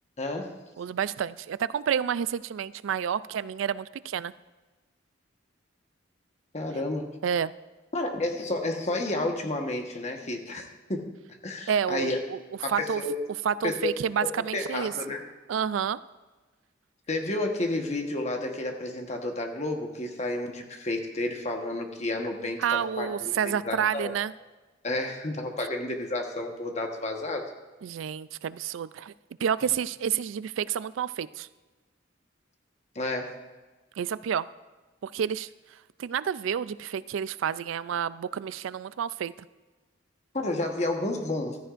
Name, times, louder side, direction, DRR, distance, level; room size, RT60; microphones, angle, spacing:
voice 1, 0.2-0.6 6.5-7.2 7.9-11.0 11.4-12.2 12.6-13.1 13.6-13.9 14.3-15.2 17.1-24.1 24.8-27.4 32.9-33.3 40.3-41.6, left 2 dB, 35° left, 3 dB, 1.2 m, -31 dB
voice 2, 0.8-4.3 7.2-7.5 11.7-12.4 12.7-13.0 13.5-14.9 15.5-16.0 22.6-24.3 27.8-29.1 29.4-31.5 34.0-34.5 35.0-35.5 36.0-39.3, right 8 dB, 85° right, 17 dB, 0.3 m, -29 dB
14.5 x 13.5 x 2.5 m, 1.2 s
head